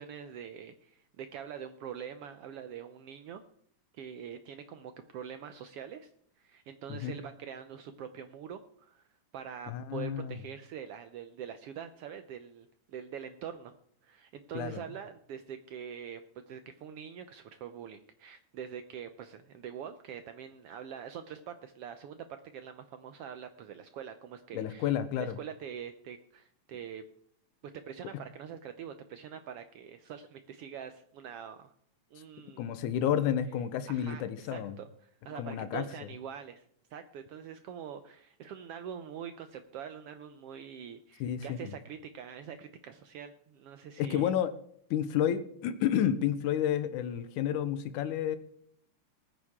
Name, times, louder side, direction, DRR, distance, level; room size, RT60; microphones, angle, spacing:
voice 1, 0.0-3.4 3.9-6.1 6.4-9.0 9.3-13.8 14.0-24.9 25.2-27.0 27.7-31.7 32.1-32.7 33.9-44.3, right 8 dB, 90° right, 9 dB, 1.3 m, -44 dB
voice 2, 9.7-10.4 14.5-14.8 24.5-25.4 28.1-28.2 32.6-34.8 35.4-35.9 41.2-41.7 44.0-44.5 44.9-48.4, left 10 dB, 80° left, 12 dB, 2.4 m, -30 dB
20.0 x 9.4 x 3.6 m, 0.66 s
omnidirectional pair, 3.6 m